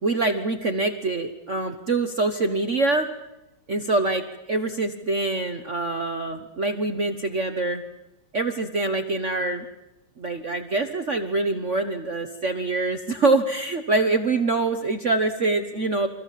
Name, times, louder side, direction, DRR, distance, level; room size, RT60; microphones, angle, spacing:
voice 1, 0.0-3.1 3.7-4.2 4.5-7.8 8.3-9.6 10.2-16.1, right 3 dB, 40° right, 7 dB, 1.4 m, -25 dB
29.0 x 24.0 x 7.5 m, 0.96 s
omnidirectional pair, 2.3 m